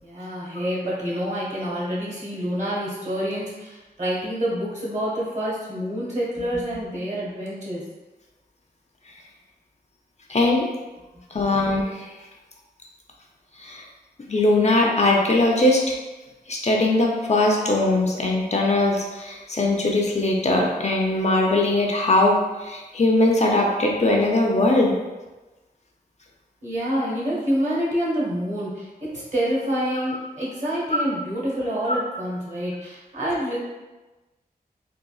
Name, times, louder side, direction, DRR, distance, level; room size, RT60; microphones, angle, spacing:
voice 1, 0.0-7.8 26.6-33.6, equal, 50° right, -7 dB, 1.3 m, -27 dB
voice 2, 10.3-10.7 11.3-12.2 13.6-13.9 14.3-15.8 16.5-25.0 30.9-31.0 31.9-32.0, left 2 dB, 45° left, -1 dB, 0.5 m, -20 dB
3.7 x 2.3 x 2.3 m, 1.2 s
wide cardioid pair, 65°, 16 cm